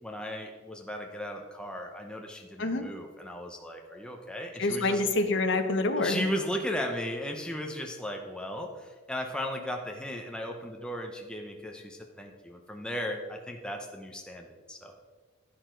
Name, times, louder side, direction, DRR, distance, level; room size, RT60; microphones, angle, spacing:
voice 1, 0.0-5.0 6.0-15.0, equal, 5° left, 2 dB, 0.8 m, -36 dB
voice 2, 4.6-6.3, left 2 dB, 65° left, 6 dB, 1.1 m, -27 dB
11.0 x 10.0 x 3.9 m, 1.5 s
head